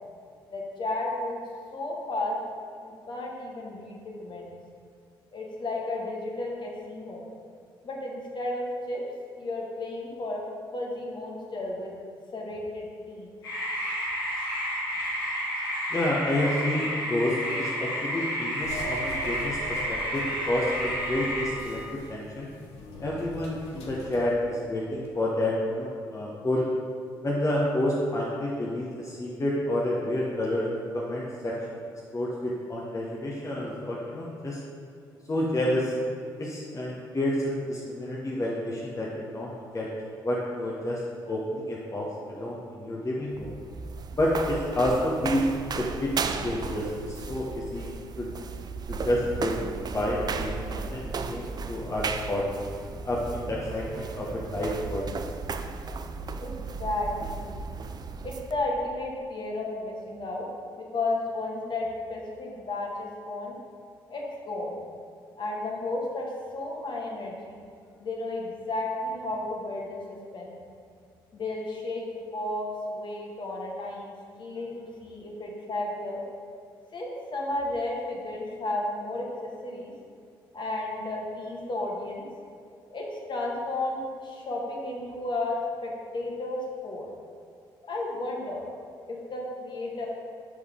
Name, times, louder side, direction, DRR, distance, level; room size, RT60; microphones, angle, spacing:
voice 1, 0.5-1.4 1.7-2.4 2.8-4.5 5.3-7.3 7.8-9.0 9.3-10.4 10.7-11.9 12.3-13.3 56.4-57.7 58.2-60.5 60.8-63.5 64.1-64.8 65.4-67.6 68.0-70.6 71.3-74.1 74.4-76.2 76.9-79.9 80.5-82.3 82.9-87.1 87.9-88.7 89.1-90.1, left 2 dB, 45° left, -2 dB, 1.4 m, -33 dB
sound 1, 13.4-21.4, equal, 85° left, 1.3 m, -31 dB
voice 2, 15.9-21.8 22.1-22.5 23.0-26.7 27.2-30.7 30.9-31.8 32.1-34.6 35.3-35.9 36.4-39.9 40.2-41.0 41.3-43.5 44.1-45.4 45.8-46.1 46.4-47.9 48.2-48.3 48.9-49.5 49.9-52.4 53.0-55.2, left 1 dB, 25° left, -5 dB, 1.0 m, -29 dB
sound 2, 18.6-25.1, left 1 dB, 65° left, 0.8 m, -40 dB
sound 3, 43.3-58.6, right 4 dB, 35° right, 0.4 m, -35 dB
6.3 x 5.4 x 3.7 m, 2.3 s
figure-of-eight pair, 45°, 11 cm